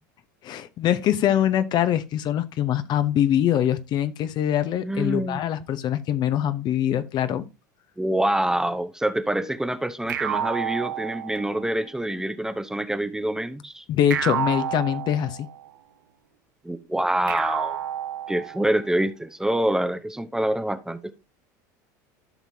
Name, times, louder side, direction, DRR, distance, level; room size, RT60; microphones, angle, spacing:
voice 1, 0.4-7.4 13.9-15.5, left 10 dB, 45° left, 0.9 m, -23 dB
voice 2, 4.8-5.4 8.0-13.8 16.6-17.8 18.3-21.1, right 1 dB, 5° right, 0.8 m, -26 dB
sound 1, 10.1-11.7 14.1-15.7 17.3-18.8, right 9 dB, 90° right, 1.0 m, -30 dB
13.0 x 5.9 x 2.8 m
hypercardioid pair, 95°, 10 cm